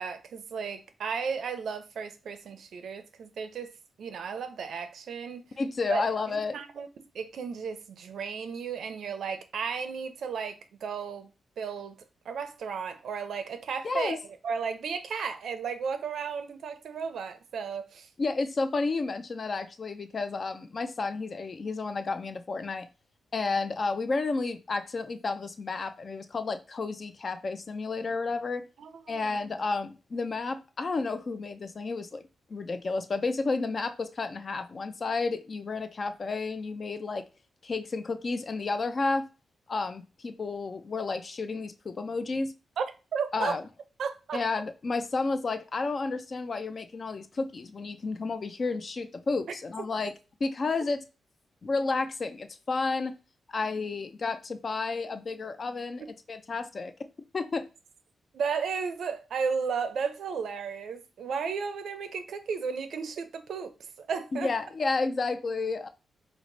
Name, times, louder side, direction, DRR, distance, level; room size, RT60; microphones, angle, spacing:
voice 1, 0.0-3.7 4.0-5.5 5.9-6.9 7.1-11.3 11.6-12.0 12.3-18.1 28.8-29.4 42.8-42.9 43.1-43.6 44.0-44.4 58.3-64.5, right 6 dB, 70° right, 0.5 m, -34 dB
voice 2, 5.6-6.6 13.8-14.2 18.2-22.9 23.3-28.6 29.1-32.2 32.5-37.2 37.6-39.3 39.7-42.5 43.3-43.6 44.3-50.1 50.4-51.0 51.6-53.1 53.5-56.0 56.3-56.9 57.3-57.7 64.3-65.9, left 3 dB, 40° left, 0.4 m, -31 dB
4.6 x 2.1 x 3.8 m
wide cardioid pair, 130°, 0 cm